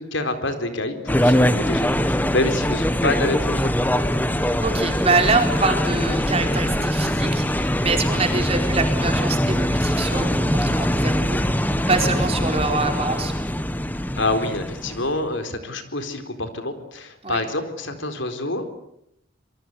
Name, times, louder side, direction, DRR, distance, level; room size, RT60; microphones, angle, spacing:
voice 1, 0.0-3.9 14.2-18.6, left 2 dB, 70° left, 8 dB, 4.1 m, -27 dB
sound 1, 1.1-15.3, equal, 10° left, 1.3 m, -22 dB
voice 2, 4.4-11.4 11.9-13.3 17.2-17.4, right 3 dB, 30° right, 4 dB, 4.5 m, -25 dB
27.0 x 23.5 x 8.2 m, 0.76 s
head